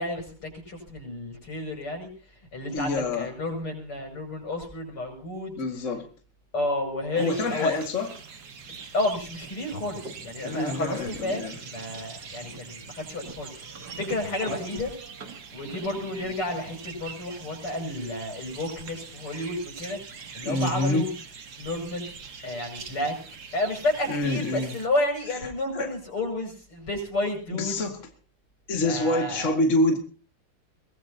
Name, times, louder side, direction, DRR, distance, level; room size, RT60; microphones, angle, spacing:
voice 1, 0.0-2.1 2.5-5.5 6.5-7.7 8.9-13.5 13.9-14.9 15.5-20.0 20.3-21.1 21.6-22.1 22.4-23.1 23.5-27.8 28.8-29.5, left 1 dB, 85° left, 3 dB, 7.3 m, -31 dB
voice 2, 2.7-3.3 5.5-6.0 7.2-8.1 10.4-11.6 20.4-21.0 24.1-24.7 25.4-25.9 27.5-28.0 28.7-30.0, left 2 dB, 35° left, 3 dB, 2.3 m, -27 dB
sound 1, 7.2-24.9, right 5 dB, 50° right, 2.0 m, -42 dB
23.5 x 18.5 x 2.8 m, 0.39 s
omnidirectional pair, 2.4 m